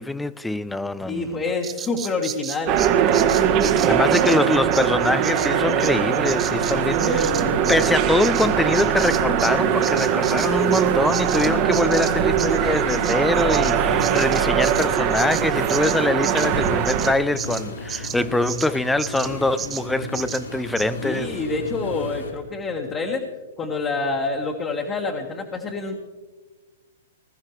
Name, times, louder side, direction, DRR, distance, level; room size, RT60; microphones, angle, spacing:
voice 1, 0.0-1.4 3.9-7.3 7.7-21.3, left 2 dB, 5° left, 0.4 m, -24 dB
voice 2, 1.0-2.8 3.8-4.0 7.0-7.5 21.0-23.2 23.6-26.0, left 3 dB, 25° left, 1.5 m, -27 dB
Bird vocalization bird call bird song, 1.6-9.6 9.8-18.7 19.0-19.3 19.6-19.9 20.1-20.4 20.8-20.9, right 8 dB, 20° right, 0.8 m, -33 dB
sound 1, 2.7-17.1, right 8 dB, 35° right, 1.2 m, -21 dB
sound 2, 5.7-22.3, left 1 dB, 85° left, 3.8 m, -34 dB
20.0 x 14.0 x 3.2 m
hypercardioid pair, 120°, 0 cm